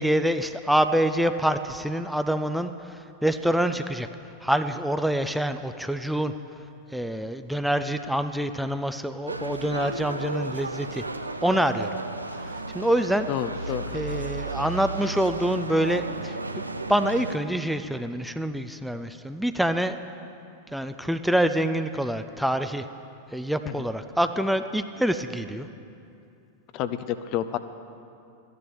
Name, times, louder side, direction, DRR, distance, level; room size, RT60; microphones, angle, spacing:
voice 1, 0.0-4.1 4.4-6.3 6.9-11.0 11.4-12.0 12.3-13.3 13.9-16.4 16.9-20.0 20.7-22.9 23.3-25.7, right 1 dB, ahead, 9 dB, 0.5 m, -26 dB
sound 1, 9.3-17.4, right 2 dB, 80° right, 0.6 m, -33 dB
voice 2, 13.3-13.9 23.7-23.8 26.7-27.6, left 11 dB, 40° left, 12 dB, 0.6 m, -29 dB
13.5 x 10.5 x 7.0 m, 2.6 s
figure-of-eight pair, 90°, 0 cm